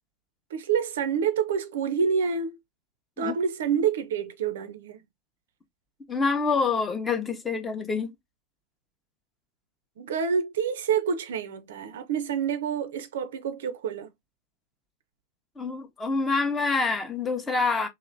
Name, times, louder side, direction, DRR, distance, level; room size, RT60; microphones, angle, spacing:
voice 1, 0.5-2.6 3.2-5.0 10.0-14.1, right 7 dB, 60° right, 0.4 m, -27 dB
voice 2, 6.1-8.1 15.6-17.9, left 4 dB, 15° left, 0.6 m, -26 dB
2.9 x 2.5 x 2.6 m
figure-of-eight pair, 90°, 0 cm